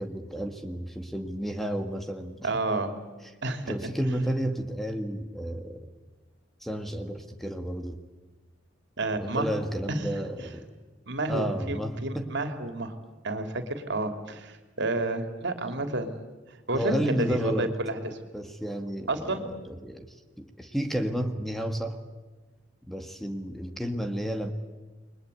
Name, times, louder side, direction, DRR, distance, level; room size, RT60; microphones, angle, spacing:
voice 1, 0.0-2.5 3.7-5.9 6.6-8.0 9.2-10.6 11.3-12.3 16.7-17.7 18.3-22.0 22.9-24.5, right 1 dB, ahead, 6 dB, 1.8 m, -32 dB
voice 2, 2.4-2.9 3.4-3.7 9.0-9.5 9.9-10.0 11.1-12.9 13.2-16.2 16.7-18.0 19.1-19.4, right 2 dB, 65° right, 7 dB, 3.2 m, -30 dB
29.5 x 22.5 x 8.4 m, 1.3 s
head